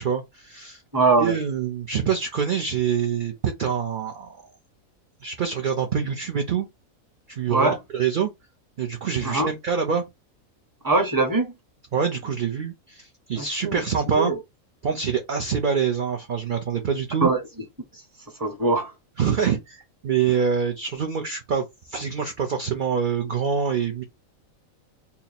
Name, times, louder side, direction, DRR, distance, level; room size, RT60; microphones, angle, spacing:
voice 1, 0.0-0.8 1.2-4.4 5.2-6.7 7.3-8.3 8.8-10.0 11.9-14.3 14.8-17.3 19.2-24.0, right 7 dB, 55° right, 0.6 m, -25 dB
voice 2, 0.9-1.4 7.5-7.8 9.2-9.5 10.8-11.5 13.4-14.4 17.2-17.4 18.4-18.9, right 3 dB, 15° right, 0.9 m, -22 dB
2.9 x 2.7 x 4.1 m
omnidirectional pair, 1.5 m